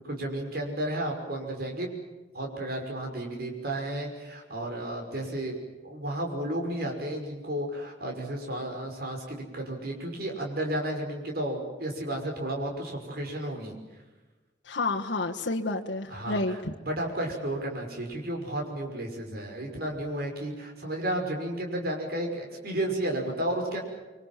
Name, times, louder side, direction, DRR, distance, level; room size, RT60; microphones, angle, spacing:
voice 1, 0.1-2.0 2.3-5.6 5.8-13.7 16.1-16.6 16.9-23.8, right 1 dB, 55° right, 2 dB, 5.8 m, -32 dB
voice 2, 14.7-16.7, left 2 dB, 75° left, 0 dB, 1.5 m, -30 dB
25.5 x 25.0 x 7.5 m, 1.2 s
head